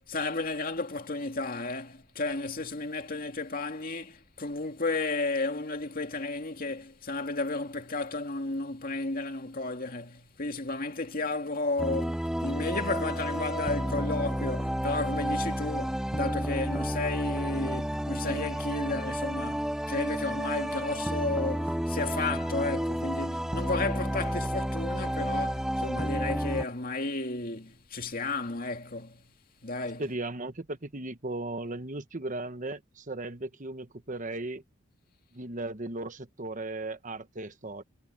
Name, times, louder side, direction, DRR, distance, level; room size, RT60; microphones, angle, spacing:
voice 1, 0.0-29.2 29.6-30.0, left 3 dB, 45° left, 2.4 m, -33 dB
sound 1, 11.8-26.6, equal, 5° right, 0.5 m, -31 dB
voice 2, 30.0-34.6 35.3-37.8, right 2 dB, 40° right, 1.3 m, -36 dB
head